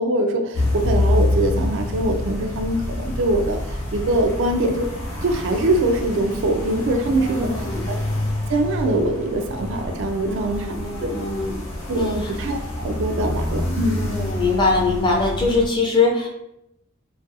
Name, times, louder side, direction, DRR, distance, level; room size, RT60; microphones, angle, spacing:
voice 1, 0.0-4.9 5.2-8.0 8.5-10.7 11.0-11.1 11.9-12.0 12.4-14.0, right 1 dB, 60° right, 4 dB, 0.3 m, -23 dB
sound 1, 0.5-15.7, left 1 dB, 70° left, 0.8 m, -27 dB
voice 2, 7.2-7.9 10.2-11.6 11.9-12.4 13.1-13.2 14.0-16.3, left 3 dB, 20° left, -2 dB, 0.4 m, -23 dB
2.4 x 2.2 x 2.6 m, 0.81 s
head